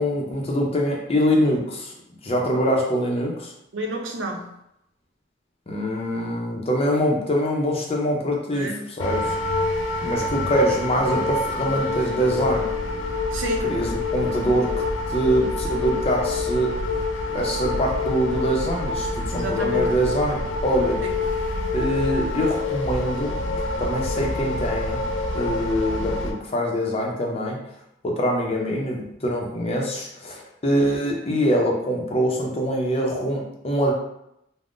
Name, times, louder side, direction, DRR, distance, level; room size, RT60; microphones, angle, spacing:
voice 1, 0.0-1.9 2.2-3.5 5.7-9.3 10.0-12.7 13.6-14.7 15.1-16.7 17.3-21.0 21.7-23.3 23.8-25.0 25.3-27.6 28.0-33.9, equal, 35° left, 0 dB, 0.5 m, -24 dB
voice 2, 3.7-4.5 8.5-8.8 13.3-13.7 19.3-19.9 21.0-21.1, right 1 dB, 85° right, 3 dB, 0.5 m, -30 dB
sound 1, 9.0-26.3, left 3 dB, 85° left, 0.4 m, -27 dB
3.6 x 2.0 x 2.4 m, 0.81 s
head